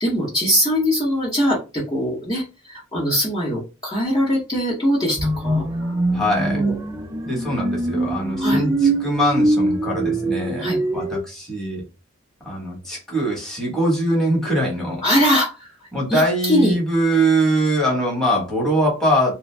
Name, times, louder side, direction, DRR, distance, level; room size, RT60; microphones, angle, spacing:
voice 1, 0.0-5.2 5.4-5.6 6.5-6.7 8.4-8.6 10.6-10.8 15.0-15.5 16.1-16.7, equal, 20° left, -7 dB, 0.9 m, -21 dB
sound 1, 5.2-11.2, right 2 dB, 15° right, 0.4 m, -23 dB
voice 2, 6.1-6.6 7.2-11.8 12.4-15.0 15.9-19.3, right 1 dB, 5° left, -3 dB, 1.2 m, -22 dB
2.5 x 2.2 x 3.2 m, 0.28 s
head